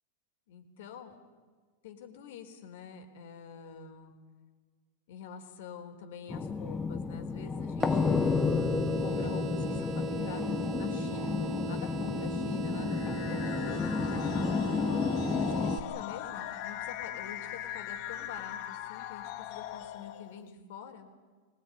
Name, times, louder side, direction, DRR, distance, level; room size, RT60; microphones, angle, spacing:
voice 1, 0.5-1.2 1.8-4.1 5.1-8.4 9.0-14.5 15.3-21.1, left 7 dB, 70° left, 5 dB, 4.0 m, -46 dB
sound 1, 6.3-15.8, left 4 dB, 15° left, 1.4 m, -31 dB
sound 2, 7.8-15.8, right 6 dB, 50° right, 2.7 m, -39 dB
sound 3, 12.8-20.4, left 12 dB, 55° left, 1.2 m, -40 dB
23.0 x 19.0 x 9.9 m, 1.5 s
hypercardioid pair, 115°, 0 cm